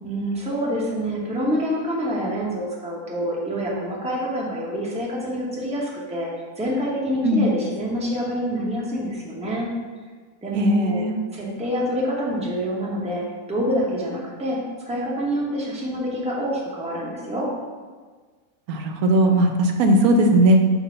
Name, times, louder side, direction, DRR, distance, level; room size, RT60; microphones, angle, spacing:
voice 1, 0.0-6.3 6.6-9.7 10.4-11.0 11.3-13.2 13.5-14.6 14.9-17.5, equal, 5° right, -4 dB, 0.9 m, -26 dB
voice 2, 10.5-11.2 18.7-20.6, right 1 dB, 75° right, 5 dB, 1.0 m, -18 dB
6.6 x 2.7 x 5.5 m, 1.4 s
omnidirectional pair, 1.6 m